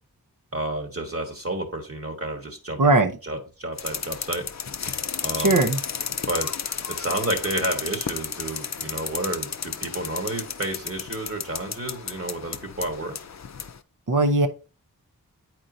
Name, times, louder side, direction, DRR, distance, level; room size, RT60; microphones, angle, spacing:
voice 1, 0.5-2.9 3.2-4.5 5.2-5.6 6.3-6.5 6.8-13.1, right 1 dB, 40° right, 4 dB, 1.3 m, -30 dB
voice 2, 2.8-3.1 5.4-5.8 14.1-14.5, right 2 dB, 60° right, 4 dB, 0.8 m, -19 dB
sound 1, 3.8-13.8, left 6 dB, 50° left, 0.5 m, -33 dB
8.7 x 4.5 x 2.6 m, 0.33 s
wide cardioid pair, 50°, 37 cm